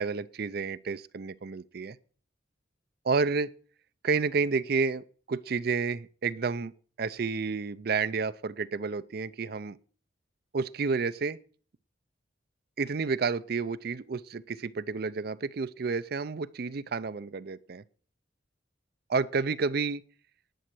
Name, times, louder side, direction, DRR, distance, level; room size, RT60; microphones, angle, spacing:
voice 1, 0.0-2.0 3.0-3.5 4.0-6.7 7.0-9.8 10.5-11.4 12.8-17.8 19.1-20.0, right 4 dB, 55° right, 0.5 m, -30 dB
10.0 x 9.2 x 6.1 m
head